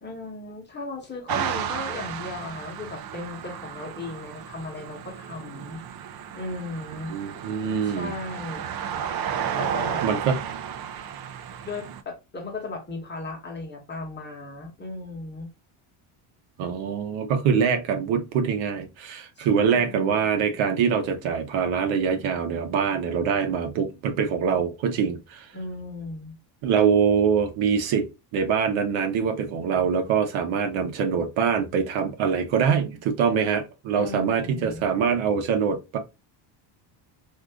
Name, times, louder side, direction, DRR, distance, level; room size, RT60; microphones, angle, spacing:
voice 1, 0.0-5.8 6.3-7.2 7.8-8.7 9.6-10.0 11.6-15.5 19.4-20.3 25.5-26.4 33.9-34.9, left 3 dB, 20° left, 1.2 m, -36 dB
sound 1, 1.3-12.0, right 8 dB, 50° right, 0.5 m, -33 dB
voice 2, 7.1-8.2 10.0-10.4 16.6-25.5 26.6-28.1 28.3-36.0, right 6 dB, 70° right, 1.0 m, -24 dB
2.8 x 2.5 x 3.4 m
cardioid pair, 130°, 49 cm